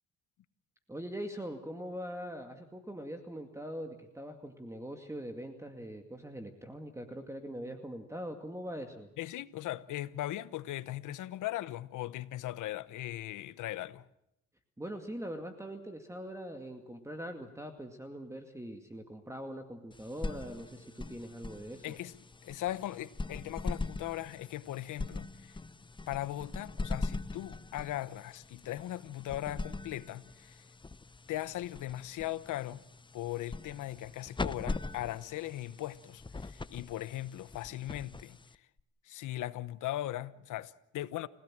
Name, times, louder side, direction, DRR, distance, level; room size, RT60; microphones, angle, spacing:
voice 1, 0.9-9.1 14.8-21.9, equal, 10° right, 2.2 m, -42 dB
voice 2, 9.2-14.1 21.8-25.6 26.1-30.6 31.3-32.8 33.1-38.4 39.0-41.3, left 14 dB, 80° left, 1.1 m, -39 dB
sound 1, 19.9-38.8, left 3 dB, 15° left, 0.8 m, -42 dB
29.5 x 17.0 x 7.6 m
cardioid pair, 90°, 30 cm